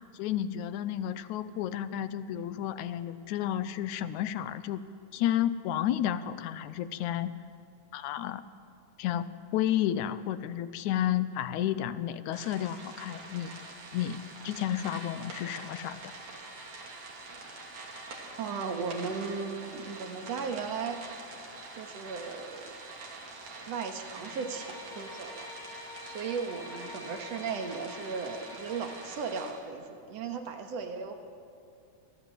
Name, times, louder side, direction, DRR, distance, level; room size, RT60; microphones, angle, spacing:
voice 1, 0.1-4.8 5.1-7.3 7.9-8.4 9.0-13.5 13.9-16.0, left 11 dB, 85° left, 13 dB, 2.1 m, -31 dB
sound 1, 12.3-29.5, right 3 dB, 85° right, 4.3 m, -45 dB
voice 2, 18.4-21.0 21.7-22.7 23.7-25.5 26.0-31.2, right 5 dB, 65° right, 4 dB, 2.6 m, -36 dB
Bowed string instrument, 24.1-29.3, left 4 dB, 50° left, 2.9 m, -48 dB
23.5 x 15.5 x 7.7 m, 2.4 s
omnidirectional pair, 3.4 m